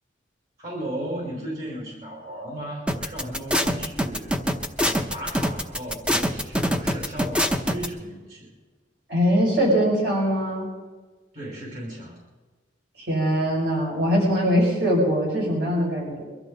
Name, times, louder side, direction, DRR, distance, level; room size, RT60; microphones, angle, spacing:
voice 1, 0.6-4.4 4.8-8.5 11.3-12.2, right 1 dB, 45° right, -4 dB, 5.3 m, -35 dB
sound 1, 2.9-7.9, equal, 5° right, 0.8 m, -23 dB
voice 2, 9.1-10.7 13.0-16.2, equal, 60° right, -3 dB, 5.8 m, -22 dB
23.5 x 13.0 x 4.0 m, 1.3 s
head